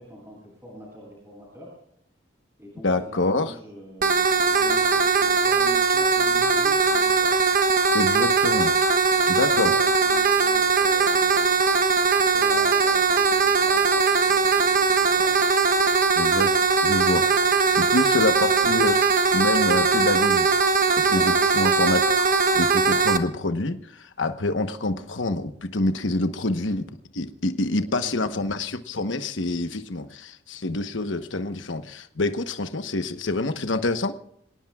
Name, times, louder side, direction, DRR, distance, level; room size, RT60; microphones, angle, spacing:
voice 1, 0.0-1.8 2.6-7.4 9.1-11.5 12.3-15.4 17.6-17.8 21.0-21.4 27.7-28.4, equal, 15° right, -4 dB, 7.9 m, -43 dB
voice 2, 2.8-3.5 7.9-8.7 9.3-9.7 16.2-17.3 17.7-20.5 21.0-22.0 22.3-26.9 27.1-34.1, left 2 dB, 85° left, 8 dB, 1.1 m, -26 dB
sound 1, 4.0-23.2, right 4 dB, 45° right, 1.1 m, -20 dB
27.5 x 18.5 x 2.4 m, 0.71 s
head